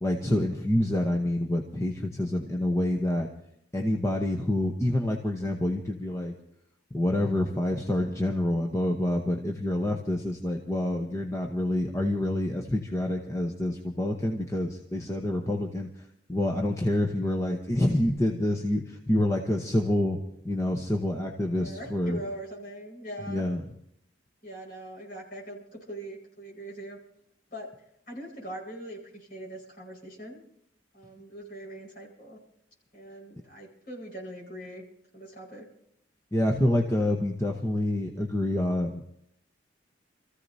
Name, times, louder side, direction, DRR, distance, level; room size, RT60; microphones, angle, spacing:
voice 1, 0.0-3.3 3.7-6.3 6.9-15.9 16.3-20.2 20.4-22.2 23.3-23.6 36.3-39.1, left 1 dB, 15° left, 1 dB, 0.9 m, -27 dB
voice 2, 21.5-23.5 24.4-27.0 27.5-27.7 28.1-30.4 30.9-32.4 32.9-34.8 35.1-35.7, right 1 dB, 50° left, -2 dB, 5.0 m, -41 dB
28.0 x 14.5 x 2.7 m, 0.72 s
head